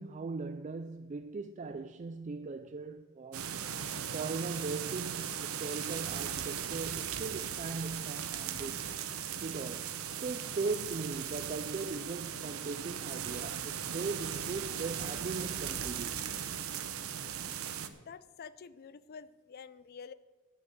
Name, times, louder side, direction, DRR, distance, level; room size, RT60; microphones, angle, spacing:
voice 1, 0.0-3.5 4.1-8.9 9.4-16.3, right 4 dB, 35° right, 0.3 m, -39 dB
sound 1, 3.3-17.9, right 8 dB, 85° right, 0.8 m, -38 dB
voice 2, 17.9-20.1, left 6 dB, 45° left, 0.4 m, -48 dB
10.5 x 7.1 x 7.7 m
head